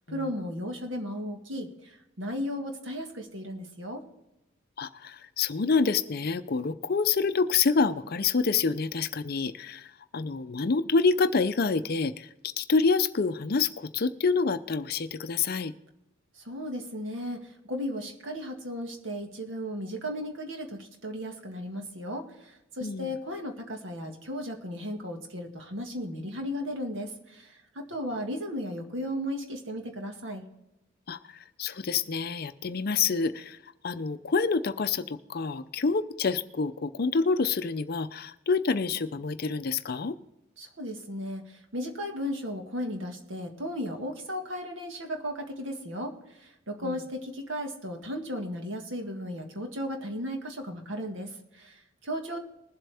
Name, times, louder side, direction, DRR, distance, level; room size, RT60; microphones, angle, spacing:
voice 1, 0.1-4.0 16.5-30.4 40.6-46.1 46.4-52.4, equal, 60° right, 4 dB, 1.7 m, -35 dB
voice 2, 4.8-9.9 10.1-12.3 12.6-15.7 22.8-23.1 31.1-33.6 33.8-40.2 46.8-47.0, left 4 dB, 45° left, 11 dB, 0.5 m, -27 dB
21.0 x 7.8 x 3.4 m, 0.91 s
head